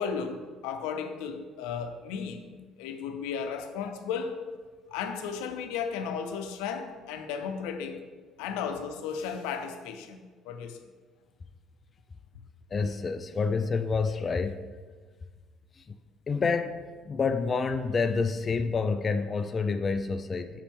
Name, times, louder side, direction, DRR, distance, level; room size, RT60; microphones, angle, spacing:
voice 1, 0.0-2.5 2.8-4.4 4.9-8.0 8.4-10.2 10.4-10.8, left 6 dB, 90° left, 7 dB, 0.6 m, -34 dB
voice 2, 12.7-14.7 15.7-16.0 16.3-20.6, left 4 dB, 30° left, 9 dB, 0.4 m, -28 dB
7.3 x 5.3 x 3.6 m, 1.4 s
cardioid pair, 105°, 0 cm